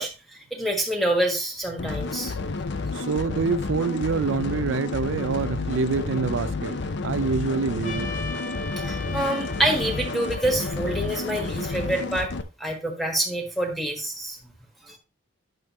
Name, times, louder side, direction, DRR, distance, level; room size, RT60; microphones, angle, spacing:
voice 1, 0.0-2.3 8.8-12.3 12.6-14.4 14.8-15.0, right 1 dB, ahead, 1.4 m, -27 dB
sound 1, 1.8-12.4, left 3 dB, 55° left, 0.6 m, -30 dB
voice 2, 2.9-8.1, right 4 dB, 65° right, 0.4 m, -26 dB
Trumpet, 7.8-12.3, left 1 dB, 40° left, 1.1 m, -38 dB
9.0 x 6.4 x 3.0 m
head